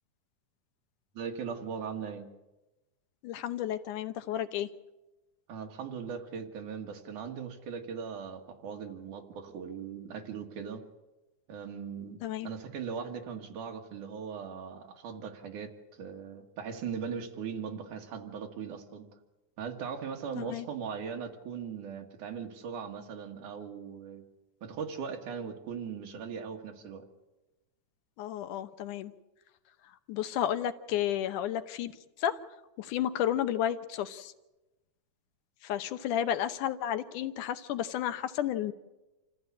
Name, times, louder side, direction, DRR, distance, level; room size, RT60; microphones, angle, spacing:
voice 1, 1.1-2.3 5.5-10.8 11.5-12.2 12.4-15.7 16.0-19.1 19.6-24.2 24.6-27.0, right 6 dB, 80° right, 3 dB, 3.3 m, -39 dB
voice 2, 3.2-4.7 12.2-12.5 20.4-20.7 28.2-29.1 30.1-31.9 32.2-32.4 32.8-34.3 35.6-38.7, left 11 dB, 85° left, 10 dB, 2.5 m, -32 dB
27.0 x 14.5 x 8.4 m, 1.1 s
omnidirectional pair, 3.5 m